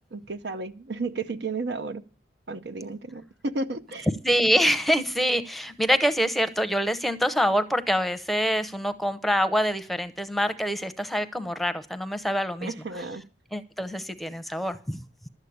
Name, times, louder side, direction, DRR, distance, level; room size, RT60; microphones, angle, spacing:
voice 1, 0.1-2.0 2.5-4.1 12.6-13.2, right 3 dB, 75° right, 0.8 m, -33 dB
voice 2, 4.2-12.7 13.5-15.0, equal, ahead, 0.7 m, -25 dB
12.0 x 8.2 x 8.5 m
head